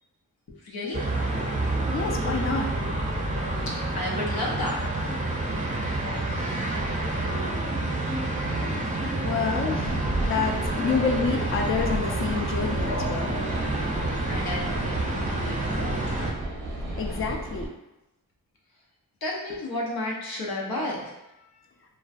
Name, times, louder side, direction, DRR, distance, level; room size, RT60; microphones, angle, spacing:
voice 1, 0.5-1.1 3.7-5.2 6.3-6.4 14.3-16.2 19.2-21.1, left 1 dB, 90° left, -2 dB, 0.6 m, -33 dB
sound 1, 0.9-16.3, right 2 dB, 20° right, 0.5 m, -28 dB
voice 2, 1.9-2.7 9.2-13.4 17.0-17.7, left 5 dB, 40° left, 2 dB, 0.4 m, -28 dB
sound 2, 9.8-17.7, right 2 dB, 90° right, 0.6 m, -34 dB
2.4 x 2.1 x 2.4 m, 0.94 s
cardioid pair, 40°, 35 cm